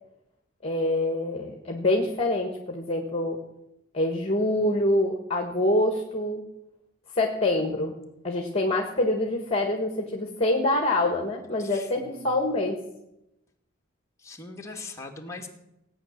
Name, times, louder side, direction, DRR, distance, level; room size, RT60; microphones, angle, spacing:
voice 1, 0.6-3.4 3.9-6.4 7.1-8.0 8.2-12.8, left 1 dB, 30° left, 2 dB, 1.7 m, -25 dB
voice 2, 11.6-12.3 14.2-15.5, left 3 dB, 15° left, 1 dB, 2.2 m, -41 dB
17.5 x 9.5 x 7.5 m, 0.86 s
head